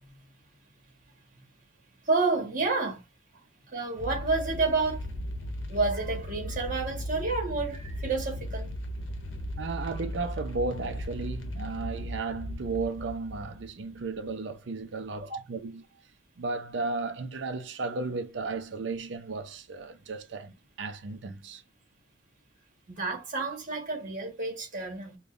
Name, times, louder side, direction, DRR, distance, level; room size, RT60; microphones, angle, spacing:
voice 1, 2.0-3.0 3.7-5.1 5.7-8.7 15.3-15.4 22.9-25.2, right 3 dB, 45° right, 1.3 m, -29 dB
sound 1, 4.0-14.0, equal, 85° left, 0.8 m, -37 dB
voice 2, 9.6-15.7 16.4-20.5 20.8-21.6, right 3 dB, 70° right, 0.5 m, -34 dB
5.1 x 2.3 x 2.5 m
head